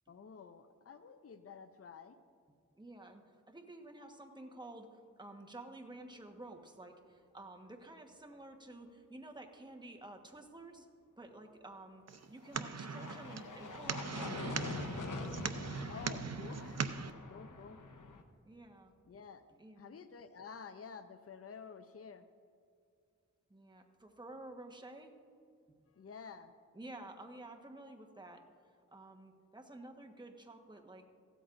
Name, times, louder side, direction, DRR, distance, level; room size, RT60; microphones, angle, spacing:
voice 1, 0.1-2.2 15.9-16.9 17.3-17.8 19.1-19.4 19.8-22.3 25.9-26.5, left 6 dB, 50° left, 9 dB, 0.6 m, -51 dB
voice 2, 2.7-10.9 11.2-12.0 12.3-14.6 17.7-17.8 18.4-18.9 19.5-20.0 23.5-25.1 25.7-25.8 26.7-28.5 28.9-31.0, right 2 dB, 15° right, 3 dB, 1.3 m, -51 dB
sound 1, 12.1-17.1, right 5 dB, 55° right, 0.7 m, -40 dB
sound 2, 12.4-18.2, left 3 dB, 85° left, 1.0 m, -45 dB
16.0 x 13.0 x 2.6 m, 2.4 s
cardioid pair, 55°, 30 cm